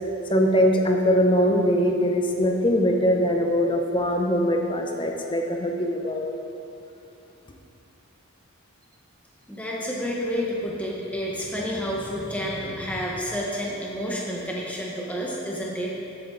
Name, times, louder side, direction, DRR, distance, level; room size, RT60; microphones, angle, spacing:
voice 1, 0.3-6.3, equal, 20° left, 2 dB, 0.8 m, -22 dB
voice 2, 9.5-16.0, equal, 5° left, -4 dB, 1.4 m, -30 dB
13.5 x 8.0 x 4.0 m, 2.7 s
head